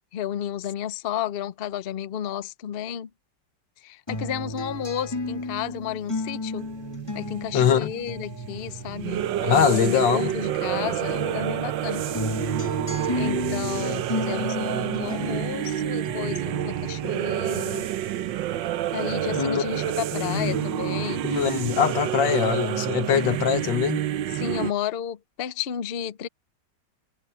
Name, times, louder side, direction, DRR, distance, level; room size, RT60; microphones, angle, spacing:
voice 1, 0.1-3.1 3.8-6.7 7.1-12.1 13.2-17.9 18.9-21.5 24.3-26.3, left 10 dB, 60° left, 0.6 m, -32 dB
sound 1, 4.1-10.7 11.1-18.7 19.1-20.1, left 2 dB, 15° left, 2.5 m, -35 dB
sound 2, 6.6-24.7, right 12 dB, 85° right, 1.5 m, -29 dB
voice 2, 7.5-7.9 9.4-10.3 19.3-19.6 20.1-20.7 21.2-24.0, left 8 dB, 90° left, 1.9 m, -23 dB
omnidirectional pair, 2.0 m